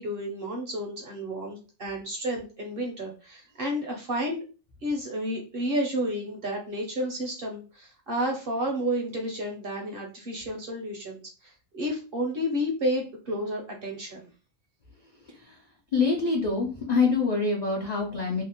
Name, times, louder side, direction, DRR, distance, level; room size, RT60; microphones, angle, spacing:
voice 1, 0.0-4.4 4.8-14.3, equal, 60° right, 1 dB, 0.6 m, -31 dB
voice 2, 15.9-18.4, left 4 dB, 60° left, -2 dB, 0.4 m, -25 dB
2.7 x 2.1 x 2.8 m, 0.35 s
omnidirectional pair, 1.4 m